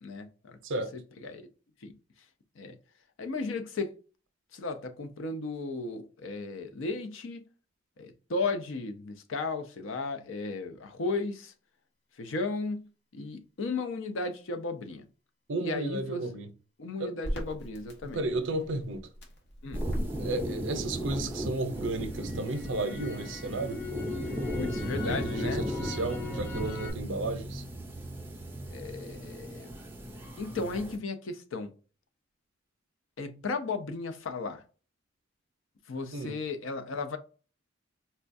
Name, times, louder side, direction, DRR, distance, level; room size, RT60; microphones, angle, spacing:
voice 1, 0.0-0.6 0.9-1.5 1.8-1.9 2.6-2.8 3.2-3.9 4.5-7.4 8.0-11.5 12.2-15.0 15.6-16.3 16.8-18.2 19.6-19.8 24.6-25.7 28.7-29.7 30.4-31.7 33.2-34.6 35.9-37.2, left 3 dB, 75° left, 0.5 m, -35 dB
voice 2, 15.5-16.5 17.0-17.1 18.0-19.1 20.2-23.8 25.0-27.6 36.1-36.4, right 2 dB, 65° right, 0.6 m, -33 dB
Crackle, 17.2-21.4 21.8-26.9, left 2 dB, 55° left, 1.0 m, -39 dB
sound 1, 19.7-31.0, right 1 dB, 10° right, 0.5 m, -36 dB
4.3 x 2.3 x 2.5 m
head